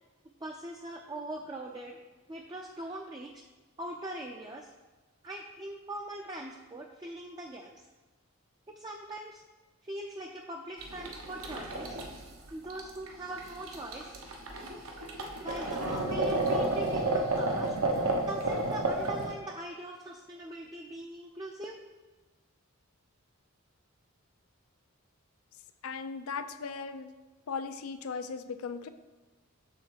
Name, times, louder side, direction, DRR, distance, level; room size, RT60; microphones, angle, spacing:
voice 1, 0.4-2.0 2.3-3.4 3.8-4.7 5.2-7.8 8.7-9.4 9.8-12.0 12.5-14.1 15.4-17.7 18.3-21.8, right 1 dB, 20° right, 1 dB, 0.4 m, -41 dB
sound 1, 10.8-19.3, right 2 dB, 85° right, 1.0 m, -31 dB
voice 2, 25.8-27.1 27.5-28.9, left 5 dB, 85° left, 11 dB, 0.5 m, -37 dB
7.0 x 3.6 x 6.2 m, 1.2 s
head